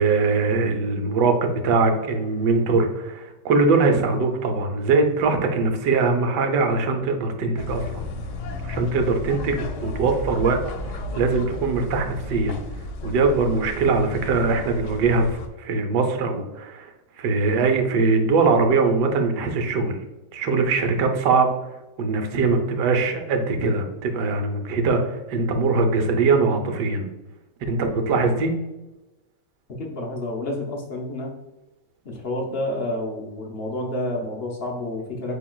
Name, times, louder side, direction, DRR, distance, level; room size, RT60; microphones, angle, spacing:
voice 1, 0.0-8.1 8.6-10.6 10.9-12.6 13.0-16.9 17.2-20.0 20.3-21.5 22.0-27.1 27.7-28.5, right 4 dB, 80° right, 5 dB, 1.3 m, -22 dB
sound 1, 7.6-15.5, left 2 dB, 90° left, 1.3 m, -33 dB
voice 2, 29.8-31.3 32.0-35.4, left 1 dB, 55° left, 0 dB, 0.6 m, -29 dB
8.1 x 2.9 x 2.3 m, 1.0 s
omnidirectional pair, 1.9 m